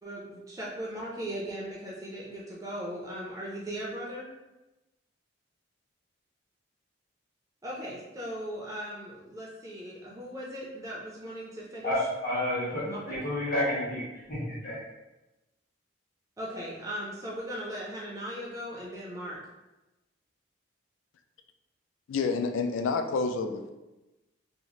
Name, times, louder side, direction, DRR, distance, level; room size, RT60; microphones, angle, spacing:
voice 1, 0.0-4.3 7.6-12.1 12.7-13.1 16.4-19.4, equal, 15° right, -4 dB, 0.4 m, -38 dB
voice 2, 11.8-14.0 14.3-14.8, left 1 dB, 45° left, -7 dB, 1.2 m, -30 dB
voice 3, 22.1-23.7, left 4 dB, 80° left, 6 dB, 0.3 m, -29 dB
2.8 x 2.4 x 3.0 m, 1.0 s
head